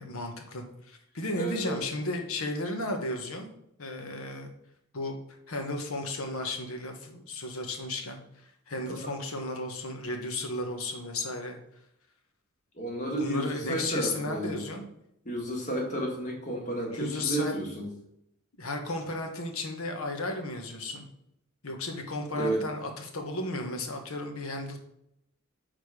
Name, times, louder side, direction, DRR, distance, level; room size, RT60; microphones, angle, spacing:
voice 1, 0.0-3.5 3.8-4.5 4.9-5.2 5.5-8.2 8.7-11.6 13.2-14.9 16.9-17.5 18.6-21.1 21.6-24.8, left 2 dB, 85° left, 4 dB, 1.2 m, -34 dB
voice 2, 1.4-1.8 8.9-9.0 12.8-14.6 15.3-17.9 22.3-22.6, right 1 dB, 35° left, -1 dB, 1.7 m, -32 dB
6.7 x 4.0 x 4.7 m, 0.78 s
head